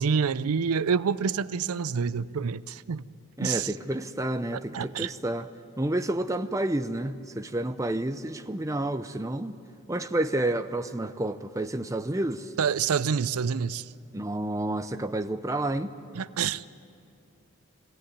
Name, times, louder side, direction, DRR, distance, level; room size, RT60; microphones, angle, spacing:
voice 1, 0.0-3.0 3.4-3.7 4.7-5.1 12.6-13.8 16.1-16.7, right 6 dB, 80° right, 0.5 m, -27 dB
voice 2, 3.4-5.5 5.8-9.6 9.9-12.5 14.1-15.9, right 1 dB, 15° right, 0.5 m, -30 dB
21.5 x 16.5 x 9.9 m
head